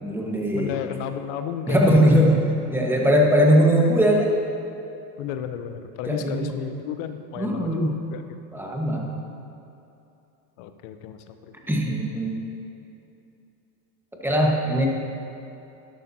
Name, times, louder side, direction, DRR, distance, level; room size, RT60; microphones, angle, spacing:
voice 1, 0.0-0.7 1.7-2.4 2.7-4.3 6.1-6.5 7.4-7.9 8.5-9.2 11.7-12.3 14.2-14.9, equal, 5° right, -1 dB, 1.3 m, -20 dB
voice 2, 0.5-2.3 5.2-8.2 10.6-11.5, left 9 dB, 60° left, 9 dB, 0.9 m, -33 dB
11.5 x 11.5 x 2.8 m, 2.8 s
supercardioid pair, 110°, 48 cm